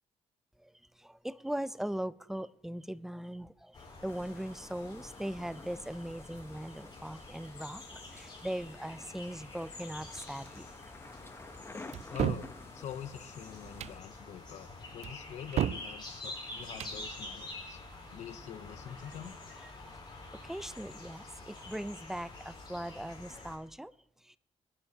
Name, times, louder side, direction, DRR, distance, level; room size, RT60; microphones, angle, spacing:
voice 1, 1.0-3.8 4.0-10.7 19.9-20.0 20.4-23.9, right 1 dB, 5° right, 16 dB, 0.4 m, -39 dB
sound 1, 3.7-23.6, left 2 dB, 40° left, 4.5 m, -47 dB
sound 2, 4.1-14.0, left 3 dB, 20° left, 0.8 m, -53 dB
sound 3, 11.9-12.5 13.6-14.0 15.0-15.9 16.6-17.0, right 11 dB, 65° right, 0.4 m, -33 dB
voice 2, 12.1-17.8 18.1-19.3, left 9 dB, 75° left, 10 dB, 0.7 m, -45 dB
24.5 x 9.9 x 2.8 m, 0.85 s
cardioid pair, 90°, 12 cm